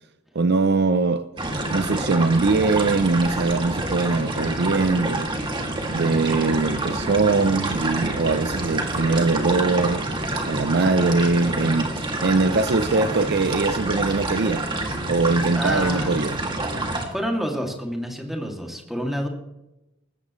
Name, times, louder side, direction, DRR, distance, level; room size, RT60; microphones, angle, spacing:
voice 1, 0.3-1.3 1.7-5.3 5.9-10.0 10.5-14.7 15.1-16.4, right 3 dB, 55° right, 0.6 m, -22 dB
sound 1, 1.4-17.1, right 2 dB, 25° right, 2.4 m, -27 dB
voice 2, 15.5-16.2 16.8-19.3, equal, ahead, 2.5 m, -28 dB
19.5 x 15.5 x 3.2 m
head